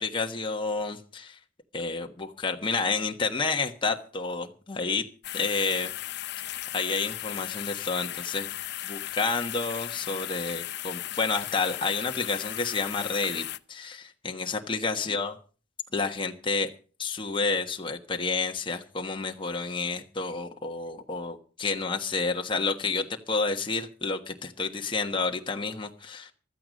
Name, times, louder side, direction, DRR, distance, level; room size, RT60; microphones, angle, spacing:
voice 1, 0.0-1.4 1.7-5.1 5.3-5.9 6.7-8.5 8.8-15.3 15.9-16.7 17.0-26.3, left 4 dB, 25° left, 3 dB, 1.3 m, -30 dB
sound 1, 5.2-13.6, left 13 dB, 60° left, 0.7 m, -36 dB
15.5 x 12.5 x 5.2 m, 0.39 s
head